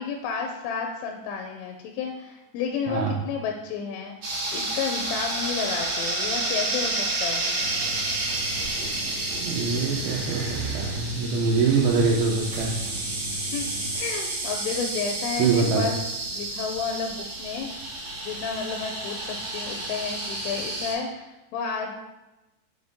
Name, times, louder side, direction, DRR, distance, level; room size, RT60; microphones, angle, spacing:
voice 1, 0.0-7.5 13.5-13.6 13.9-15.9 16.3-17.7 18.2-21.9, left 6 dB, 85° left, 3 dB, 2.9 m, -31 dB
sound 1, 4.2-20.9, right 2 dB, 40° right, 2.1 m, -30 dB
sound 2, 7.6-14.0, right 2 dB, 65° right, 3.1 m, -37 dB
voice 2, 9.4-12.8 15.4-16.0, right 4 dB, 80° right, -2 dB, 3.0 m, -24 dB
7.9 x 4.2 x 3.6 m, 0.99 s
omnidirectional pair, 5.8 m